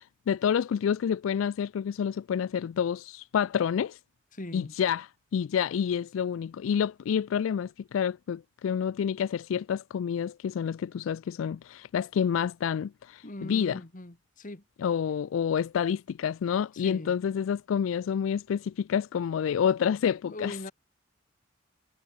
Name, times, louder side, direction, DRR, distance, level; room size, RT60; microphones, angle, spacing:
voice 1, 0.0-4.0 4.5-13.8 14.8-20.7, left 8 dB, 85° left, 0.3 m, -28 dB
voice 2, 4.3-4.7 13.2-14.6 16.7-17.1 20.2-20.7, left 1 dB, 40° left, 1.7 m, -40 dB
head